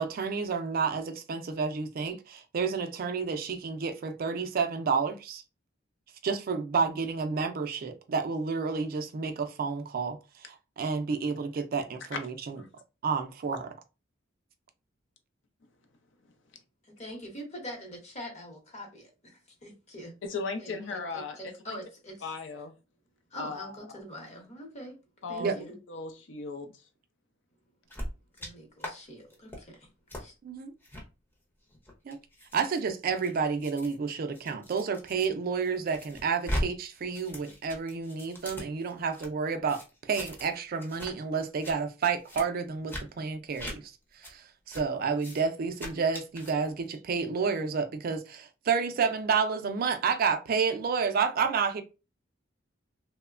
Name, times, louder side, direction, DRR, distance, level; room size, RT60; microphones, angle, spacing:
voice 1, 0.0-5.4 6.2-12.6 13.0-13.7 25.4-25.5 30.4-30.7 32.1-32.2 32.5-39.8 40.1-43.8 44.2-51.8, right 5 dB, 50° right, 0.4 m, -30 dB
voice 2, 16.8-20.1 20.6-22.3 23.3-25.0 25.3-25.8 28.4-29.9 30.2-30.3, equal, 35° left, 0.8 m, -44 dB
voice 3, 20.2-21.4 21.7-21.8 22.2-22.7 23.4-23.8 25.2-26.7, left 4 dB, 70° left, 0.5 m, -37 dB
sound 1, 27.9-28.5 28.8-28.9 29.3-29.6 30.1-30.2 30.8-31.0 31.7-35.3 35.6-36.6 36.9-39.3 39.7-40.5 40.8-41.1 41.4-41.8 42.2-42.4 42.9-43.0 43.5-43.8 44.2-44.3 44.7-44.8 45.2-45.4 45.7-46.5, equal, 10° left, 0.6 m, -39 dB
3.0 x 2.1 x 2.4 m
head